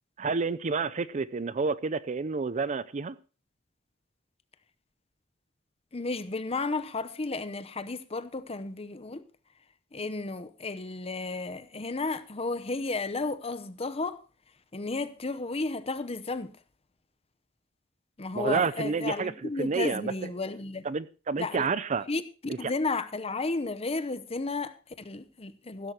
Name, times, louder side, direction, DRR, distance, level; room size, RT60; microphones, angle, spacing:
voice 1, 0.2-3.1 18.4-20.1 20.8-22.0, right 4 dB, 35° right, 0.5 m, -29 dB
voice 2, 5.9-9.3 9.9-14.2 14.7-16.5 18.2-20.9 21.4-21.7 22.1-25.9, left 3 dB, 30° left, 0.8 m, -33 dB
15.5 x 13.0 x 2.9 m
head